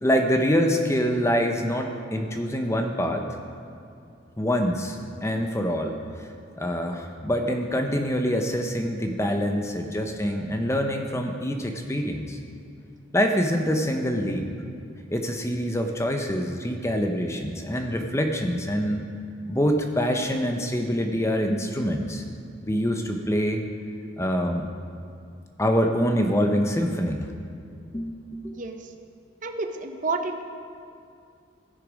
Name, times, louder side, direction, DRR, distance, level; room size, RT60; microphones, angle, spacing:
voice 1, 0.0-3.3 4.4-6.0 6.6-12.4 13.1-14.5 15.1-19.1 19.5-22.2 22.7-23.6 24.2-24.7 25.6-27.3 27.9-28.6, equal, 15° left, 4 dB, 0.7 m, -25 dB
voice 2, 28.5-28.9 29.4-30.4, right 3 dB, 40° right, 6 dB, 0.6 m, -30 dB
15.5 x 6.6 x 5.2 m, 2.4 s
head